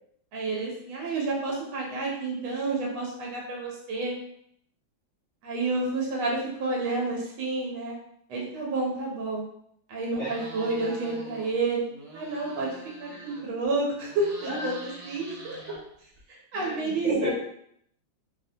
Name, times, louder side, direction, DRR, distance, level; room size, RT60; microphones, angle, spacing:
voice 1, 0.3-4.2 5.4-8.0 8.3-9.4 9.9-11.9 12.1-15.6 16.3-17.3, right 3 dB, 90° right, -2 dB, 1.5 m, -30 dB
sound 1, 10.1-11.5 11.8-13.6 14.0-16.2, right 2 dB, 70° right, 0.8 m, -45 dB
voice 2, 16.5-17.3, left 1 dB, 75° left, -7 dB, 0.6 m, -32 dB
3.8 x 2.1 x 2.7 m, 0.70 s
omnidirectional pair, 2.2 m